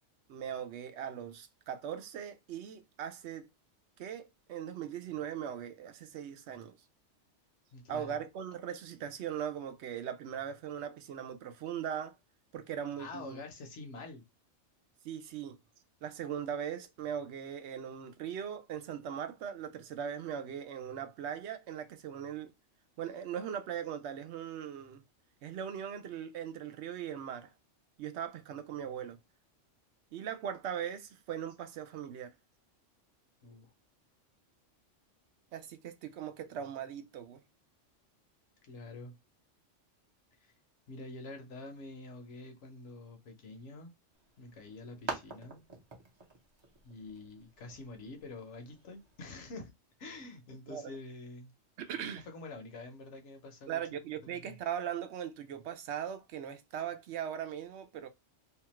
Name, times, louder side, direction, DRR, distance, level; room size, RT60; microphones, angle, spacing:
voice 1, 0.3-3.5 4.0-6.8 7.9-12.1 12.5-13.4 15.0-15.6 16.0-22.5 23.0-25.0 25.4-27.5 28.0-29.2 30.1-32.3 35.5-37.4 50.7-50.9 51.8-52.2 53.7-58.1, right 9 dB, 70° right, 0.8 m, -39 dB
voice 2, 7.7-8.2 13.0-14.2 33.4-33.7 38.7-39.2 40.4-40.5 40.9-43.9 44.4-45.6 46.8-49.7 50.0-51.5 52.3-54.0 54.3-54.6, left 3 dB, 70° left, 1.1 m, -47 dB
sound 1, 44.1-49.3, right 3 dB, 30° right, 0.6 m, -47 dB
2.8 x 2.3 x 2.9 m
omnidirectional pair, 1.3 m